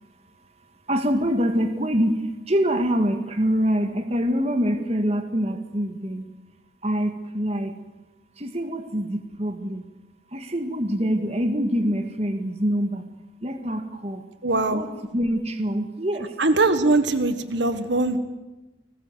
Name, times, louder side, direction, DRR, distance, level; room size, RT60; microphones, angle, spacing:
voice 1, 0.9-6.2 6.8-7.7 8.4-9.8 10.3-13.0 13.4-14.2 14.7-16.3, equal, 35° right, 7 dB, 2.0 m, -25 dB
voice 2, 14.4-14.8 16.4-18.2, right 2 dB, 80° right, 10 dB, 1.6 m, -21 dB
30.0 x 20.0 x 8.2 m, 1.1 s
head